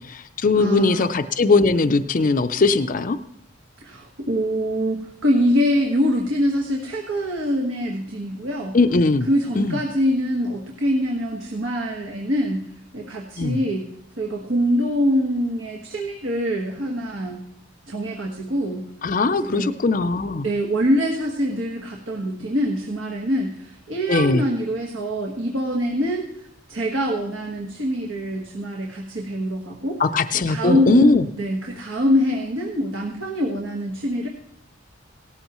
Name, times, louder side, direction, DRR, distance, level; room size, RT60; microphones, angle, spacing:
voice 1, 0.0-3.2 8.7-9.3 9.6-9.8 13.4-13.6 19.0-20.5 24.1-24.4 30.0-31.3, left 3 dB, 40° left, 7 dB, 0.4 m, -19 dB
voice 2, 0.6-1.1 3.8-8.7 9.3-12.6 12.9-13.9 14.2-17.4 17.9-18.8 19.4-19.7 20.4-26.3 26.7-30.0 30.5-34.3, equal, 75° right, 0 dB, 1.4 m, -24 dB
17.5 x 13.5 x 3.0 m, 0.73 s
head